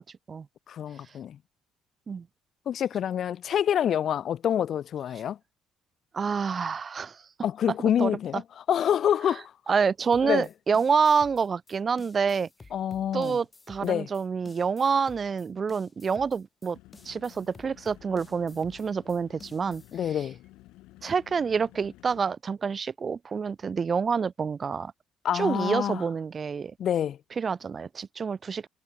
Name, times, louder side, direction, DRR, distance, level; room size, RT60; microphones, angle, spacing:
voice 1, 0.7-1.4 2.7-5.4 7.4-8.4 8.7-9.5 10.2-10.5 12.7-13.4 13.8-14.1 19.9-20.4 25.2-26.0 26.8-27.2, left 9 dB, 45° left, 0.4 m, -27 dB
voice 2, 6.1-7.2 8.0-8.4 9.7-12.5 13.1-16.8 17.0-19.8 20.1-20.2 21.0-24.9 25.3-26.7 27.4-28.7, right 5 dB, 30° right, 0.4 m, -27 dB
sound 1, 10.1-20.0, left 3 dB, 20° left, 4.4 m, -52 dB
sound 2, 16.7-22.2, left 18 dB, 85° left, 2.0 m, -53 dB
cardioid pair, 150°, 0 cm